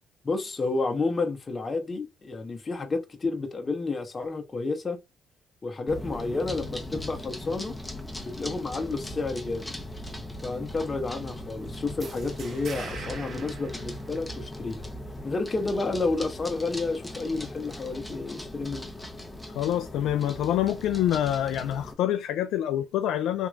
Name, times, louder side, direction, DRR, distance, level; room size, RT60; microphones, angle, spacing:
voice 1, 0.2-5.0 5.6-7.8 8.2-9.7 10.4-14.9 15.2-18.9, left 3 dB, 35° left, 0.9 m, -30 dB
sound 1, 5.9-21.9, left 1 dB, 10° left, 1.0 m, -39 dB
sound 2, 12.0-14.7, right 3 dB, 55° right, 1.1 m, -41 dB
voice 2, 19.5-23.5, left 11 dB, 80° left, 0.3 m, -26 dB
3.6 x 2.9 x 2.4 m
supercardioid pair, 70°, 0 cm